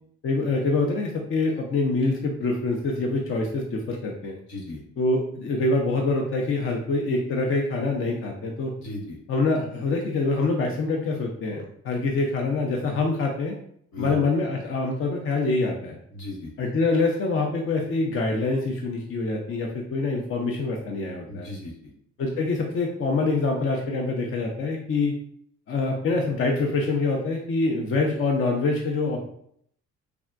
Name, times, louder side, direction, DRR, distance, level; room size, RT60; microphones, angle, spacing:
voice 1, 0.2-4.4 5.0-8.7 9.3-13.5 14.0-16.0 16.6-21.5 22.2-25.1 25.7-29.2, left 3 dB, 45° left, 1 dB, 0.6 m, -25 dB
voice 2, 4.5-4.8 8.8-9.2 13.9-14.2 16.1-16.5 21.3-21.9, left 2 dB, 75° left, -1 dB, 1.0 m, -36 dB
3.4 x 2.1 x 2.4 m, 0.66 s
supercardioid pair, 75°, 29 cm